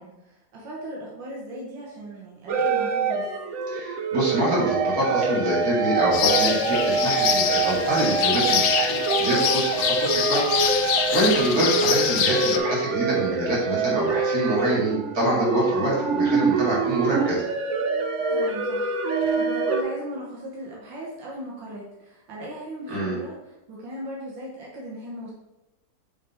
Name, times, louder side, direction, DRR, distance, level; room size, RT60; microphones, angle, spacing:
voice 1, 0.0-3.3 11.3-11.6 18.3-23.4 23.7-25.3, right 1 dB, 90° right, -4 dB, 1.8 m, -38 dB
sound 1, 2.5-19.8, right 4 dB, 70° right, 0.7 m, -25 dB
voice 2, 3.7-10.4 11.1-17.4 22.9-23.2, right 1 dB, 55° right, -6 dB, 2.6 m, -25 dB
sound 2, 6.1-12.6, left 8 dB, 85° left, 1.3 m, -25 dB
6.5 x 3.8 x 4.2 m, 0.97 s
omnidirectional pair, 2.0 m